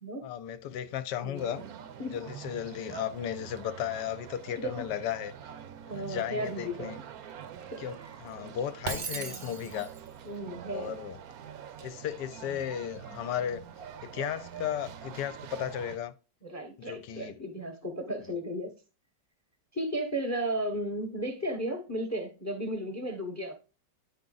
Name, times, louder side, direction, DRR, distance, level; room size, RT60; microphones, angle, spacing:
voice 1, 0.2-1.6 2.1-5.3 5.9-7.0 7.8-9.9 10.7-11.2 11.8-13.6 14.0-16.1 16.8-17.3, left 10 dB, 75° left, 1.2 m, -35 dB
voice 2, 1.2-2.2 4.6-4.9 5.9-6.9 7.7-8.2 9.1-9.4 10.2-11.0 16.4-18.7 19.7-23.6, right 1 dB, 15° left, 0.6 m, -35 dB
sound 1, 1.3-16.0, right 9 dB, 65° right, 1.0 m, -45 dB
Shatter, 8.9-10.1, right 5 dB, 85° right, 0.4 m, -37 dB
10.0 x 3.9 x 3.9 m
omnidirectional pair, 1.9 m